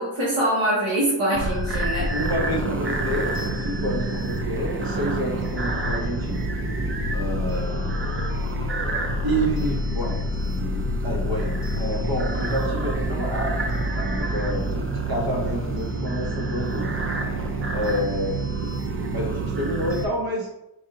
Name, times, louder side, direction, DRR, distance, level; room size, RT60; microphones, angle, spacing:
voice 1, 0.0-2.1, right 1 dB, 85° right, -7 dB, 1.5 m, -23 dB
sound 1, 1.3-20.1, right 1 dB, 30° right, 0.4 m, -27 dB
voice 2, 2.1-6.5 7.1-7.9 9.2-16.9 17.7-18.4 19.1-20.5, equal, 45° right, -1 dB, 1.2 m, -29 dB
4.6 x 2.7 x 3.8 m, 0.90 s
wide cardioid pair, 155°, 50 cm